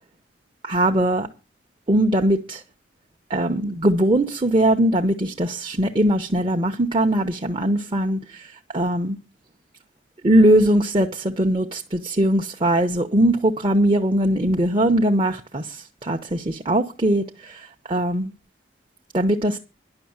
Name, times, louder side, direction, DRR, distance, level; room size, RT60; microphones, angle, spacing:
voice 1, 0.6-1.3 1.9-2.6 3.3-8.5 8.7-9.2 10.2-18.3 19.1-19.6, right 1 dB, 30° right, 0.8 m, -20 dB
11.0 x 6.3 x 8.7 m
head